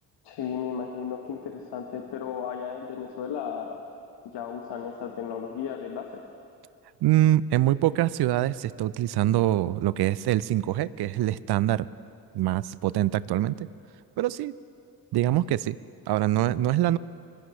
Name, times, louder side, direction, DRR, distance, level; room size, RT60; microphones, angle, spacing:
voice 1, 0.2-3.8 4.3-6.1, left 7 dB, 60° left, 3 dB, 1.4 m, -34 dB
voice 2, 7.0-11.9 12.3-13.7 14.2-14.5 15.1-15.8 16.1-17.0, right 14 dB, 55° right, 19 dB, 0.6 m, -24 dB
25.5 x 13.5 x 3.2 m, 2.4 s
hypercardioid pair, 40°, 47 cm